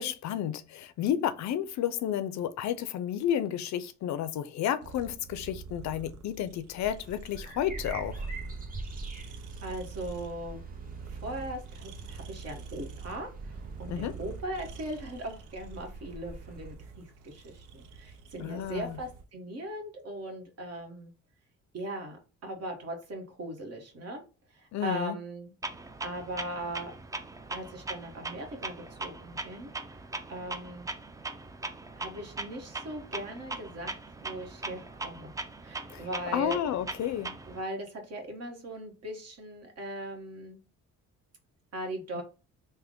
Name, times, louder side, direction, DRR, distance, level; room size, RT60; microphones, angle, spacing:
voice 1, 0.0-8.3 13.9-14.2 18.4-19.0 24.7-25.2 35.9-37.3 42.1-42.2, left 10 dB, 65° left, 0.4 m, -31 dB
sound 1, 4.8-19.2, right 5 dB, 90° right, 0.6 m, -46 dB
sound 2, 6.8-16.7, right 2 dB, 30° right, 0.8 m, -44 dB
voice 2, 9.6-10.6 11.1-21.1 21.7-24.2 24.5-25.5 26.0-26.9 27.5-30.0 30.3-30.9 31.9-35.3 35.6-36.6 37.5-40.6 41.7-42.2, right 1 dB, 55° right, 1.3 m, -39 dB
Clock, 25.6-37.6, right 3 dB, 10° right, 0.3 m, -40 dB
3.4 x 2.1 x 3.6 m
cardioid pair, 90°, 30 cm